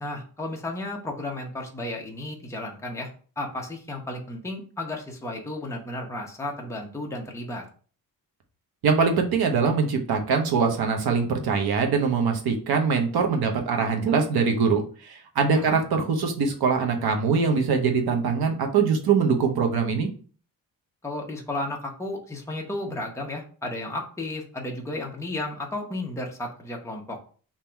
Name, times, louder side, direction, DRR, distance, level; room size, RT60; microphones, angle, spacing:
voice 1, 0.0-3.1 3.4-7.6 15.6-15.8 21.0-27.2, left 2 dB, 10° left, 0 dB, 0.8 m, -33 dB
voice 2, 8.8-20.1, right 5 dB, 80° right, 4 dB, 1.0 m, -23 dB
3.7 x 2.9 x 4.4 m, 0.41 s
wide cardioid pair, 155°, 37 cm